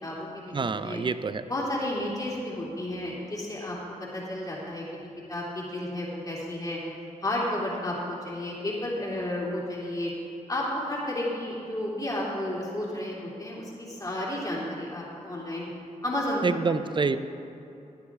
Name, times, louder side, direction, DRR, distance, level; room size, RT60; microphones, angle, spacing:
voice 1, 0.0-1.0 1.5-3.8 4.1-5.0 5.3-6.8 7.2-10.1 10.5-15.7 16.0-16.4 16.7-16.9, left 1 dB, 25° left, -5 dB, 2.9 m, -32 dB
voice 2, 0.5-1.4 16.4-17.2, right 4 dB, 35° right, 12 dB, 0.5 m, -27 dB
15.5 x 9.9 x 3.7 m, 2.7 s
cardioid pair, 75°, 14 cm